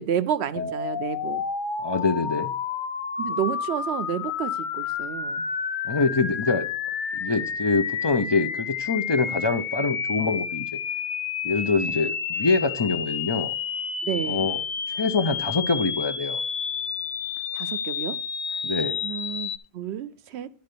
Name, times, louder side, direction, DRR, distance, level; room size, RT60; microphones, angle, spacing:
voice 1, 0.0-1.4 3.2-5.5 14.0-14.5 17.5-18.2 19.0-20.5, right 9 dB, 75° right, 0.9 m, -30 dB
sound 1, 0.5-19.6, left 6 dB, 55° left, 0.8 m, -30 dB
voice 2, 1.8-2.5 5.8-6.7 7.1-10.7 11.4-13.5 14.3-14.6 14.9-16.4 18.6-19.0, left 4 dB, 35° left, 0.4 m, -25 dB
10.5 x 4.4 x 6.6 m
omnidirectional pair, 1.1 m